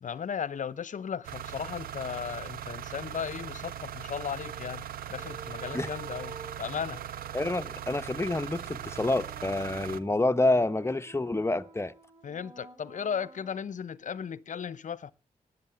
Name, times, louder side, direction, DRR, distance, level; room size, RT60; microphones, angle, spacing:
voice 1, 0.0-7.0 12.2-15.1, left 7 dB, 60° left, 0.7 m, -36 dB
sound 1, 1.2-10.0, right 10 dB, 80° right, 0.6 m, -40 dB
sound 2, 4.4-13.8, right 5 dB, 40° right, 3.9 m, -51 dB
voice 2, 7.3-11.9, left 2 dB, 20° left, 0.9 m, -28 dB
10.5 x 7.6 x 7.0 m
supercardioid pair, 50°, 15 cm